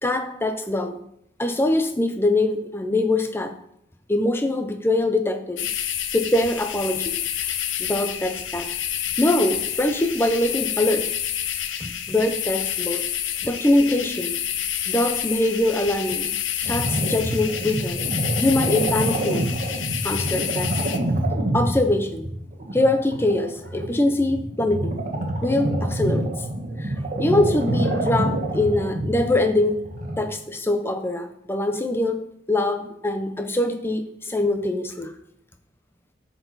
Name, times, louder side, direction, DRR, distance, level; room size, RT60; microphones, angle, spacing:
voice 1, 0.0-1.0 1.4-3.5 4.1-5.7 6.1-7.2 7.8-8.7 9.2-11.1 11.8-13.0 13.4-14.4 14.9-16.3 16.6-18.0 18.4-19.4 20.0-20.7 21.5-22.3 22.7-25.1 25.4-26.3 26.8-26.9 27.2-29.8 30.2-35.1, left 1 dB, 15° left, 7 dB, 0.6 m, -23 dB
sound 1, 5.6-21.0, left 10 dB, 90° left, 0.6 m, -29 dB
sound 2, 16.6-30.2, right 1 dB, 40° right, 1.1 m, -27 dB
9.8 x 4.6 x 4.0 m, 0.72 s
head